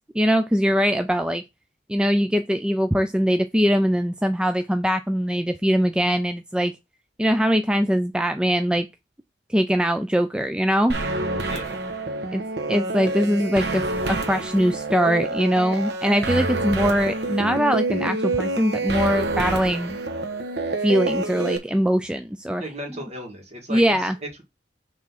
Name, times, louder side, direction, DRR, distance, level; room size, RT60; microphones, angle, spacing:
voice 1, 0.1-1.4 1.9-6.7 7.2-8.9 9.5-11.0 12.3-12.4 12.7-20.0 20.8-22.6 23.7-24.2, equal, 5° right, 0.4 m, -22 dB
sound 1, 10.9-21.6, right 2 dB, 70° right, 1.2 m, -27 dB
voice 2, 11.4-11.8 22.6-24.4, right 1 dB, 40° right, 2.2 m, -35 dB
6.0 x 3.7 x 5.9 m
head